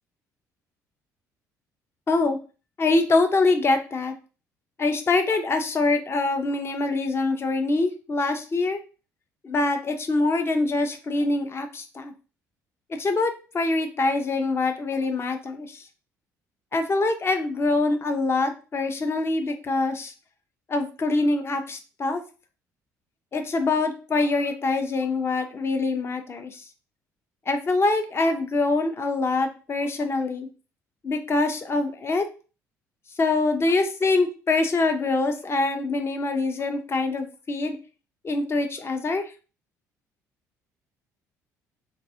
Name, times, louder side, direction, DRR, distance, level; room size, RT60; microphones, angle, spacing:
voice 1, 2.1-2.4 2.8-4.1 4.8-8.8 9.4-12.1 13.0-15.8 16.7-20.1 20.7-22.2 23.3-26.5 27.5-30.5 31.0-32.2 33.2-37.8 38.2-39.2, left 3 dB, 30° left, 6 dB, 0.5 m, -24 dB
2.6 x 2.3 x 2.5 m, 0.35 s
figure-of-eight pair, 50°, 9 cm